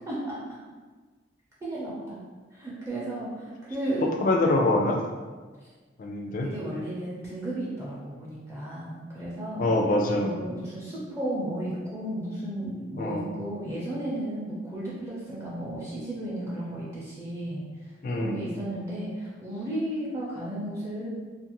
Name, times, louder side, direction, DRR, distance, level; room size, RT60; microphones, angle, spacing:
voice 1, 0.1-0.4 1.6-2.2 2.5-4.1 6.4-9.7 10.1-17.7 18.1-21.1, right 1 dB, 15° right, -7 dB, 0.5 m, -34 dB
voice 2, 4.0-5.0 6.0-6.5 9.6-10.4 13.0-13.3 18.0-18.4, left 2 dB, 45° left, 1 dB, 0.4 m, -25 dB
2.5 x 2.4 x 2.9 m, 1.4 s
head